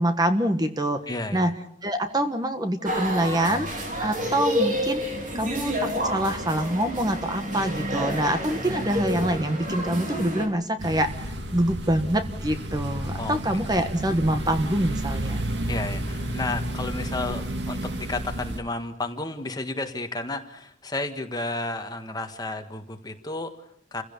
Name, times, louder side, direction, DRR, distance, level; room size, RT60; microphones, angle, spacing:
voice 1, 0.0-1.0 1.3-1.5 1.8-3.7 4.0-5.0 5.3-15.4, right 1 dB, 20° right, 8 dB, 1.3 m, -25 dB
voice 2, 1.1-1.5 13.1-13.4 15.7-24.0, left 2 dB, 20° left, 6 dB, 1.6 m, -32 dB
sound 1, 2.8-10.5, equal, 45° right, 4.2 m, -29 dB
sound 2, 10.8-18.6, right 1 dB, 75° right, 2.0 m, -31 dB
28.5 x 16.0 x 7.0 m, 0.70 s
head